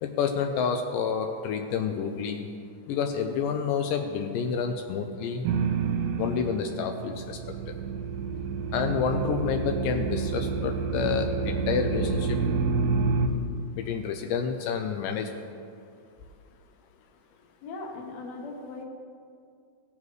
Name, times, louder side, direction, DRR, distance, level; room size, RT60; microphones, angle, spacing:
voice 1, 0.0-2.5 2.9-5.5 6.2-7.4 8.7-12.4 13.7-15.3, left 6 dB, 90° left, 5 dB, 1.9 m, -29 dB
sound 1, 5.4-6.9 7.1-13.3, right 5 dB, 85° right, 2.5 m, -28 dB
voice 2, 17.6-18.8, left 3 dB, 60° left, 0 dB, 2.0 m, -39 dB
16.5 x 7.1 x 3.2 m, 2.3 s
omnidirectional pair, 4.5 m